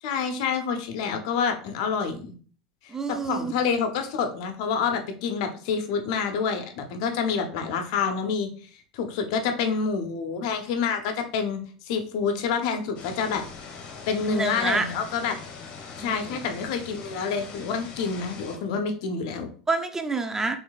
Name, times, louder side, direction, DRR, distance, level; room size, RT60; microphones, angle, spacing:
voice 1, 0.0-2.3 3.1-8.5 8.9-13.4 14.1-15.4 16.0-19.5, left 6 dB, 65° left, 6 dB, 0.8 m, -27 dB
voice 2, 2.9-3.5 14.2-14.9 16.0-16.4 19.7-20.6, right 3 dB, 15° right, 7 dB, 0.6 m, -28 dB
sound 1, 13.0-18.6, left 5 dB, 50° left, 1.1 m, -42 dB
4.5 x 3.3 x 2.3 m, 0.42 s
hypercardioid pair, 80°, 3 cm